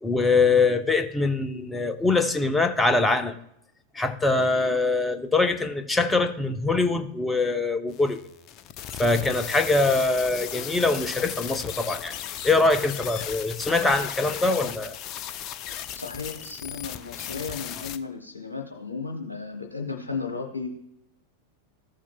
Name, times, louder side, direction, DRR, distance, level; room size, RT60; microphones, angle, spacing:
voice 1, 0.0-3.3 3.9-8.2 9.0-12.1 12.4-15.0, left 3 dB, 10° left, 7 dB, 0.8 m, -23 dB
sound 1, 7.9-18.0, left 10 dB, 35° left, 0.5 m, -36 dB
voice 2, 15.7-20.7, left 5 dB, 80° left, 2 dB, 1.0 m, -34 dB
14.5 x 7.3 x 2.3 m, 0.78 s
figure-of-eight pair, 90°, 0 cm